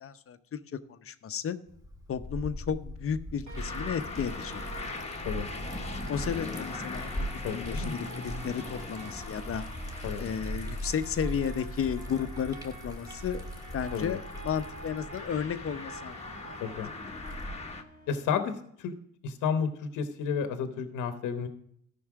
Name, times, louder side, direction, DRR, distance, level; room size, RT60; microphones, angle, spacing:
voice 1, 0.0-1.6 2.1-4.6 6.1-9.6 10.2-13.4 13.7-16.3, left 7 dB, 45° left, 11 dB, 0.7 m, -33 dB
Liquid, 1.7-17.8, equal, 10° right, 1.7 m, -40 dB
sound 1, 3.5-17.8, left 3 dB, 20° left, 1.1 m, -42 dB
sound 2, 3.5-18.2, right 3 dB, 70° right, 2.3 m, -48 dB
voice 2, 7.4-7.9 10.0-10.3 13.9-14.2 16.6-16.9 18.1-18.9 19.2-21.5, left 6 dB, 85° left, 8 dB, 0.9 m, -31 dB
13.5 x 5.5 x 4.8 m, 0.67 s
cardioid pair, 90°, 30 cm